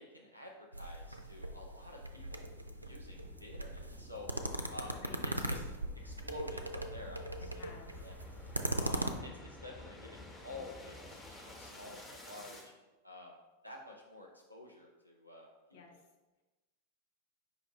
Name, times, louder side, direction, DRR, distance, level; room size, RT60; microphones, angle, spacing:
voice 1, 0.0-2.5 2.8-4.3 4.7-5.6 6.0-7.7 8.0-8.1 8.8-12.7 13.0-13.4 13.6-16.0, left 2 dB, 90° left, -1 dB, 0.5 m, -50 dB
sound 1, 0.7-9.1, right 1 dB, 85° right, 0.3 m, -40 dB
sound 2, 1.2-12.7, left 2 dB, 15° left, 0.9 m, -52 dB
voice 2, 5.0-5.5 7.5-7.9 15.7-16.0, left 5 dB, 55° left, 2 dB, 0.8 m, -55 dB
5.0 x 2.5 x 4.2 m, 1.1 s
figure-of-eight pair, 90°, 0 cm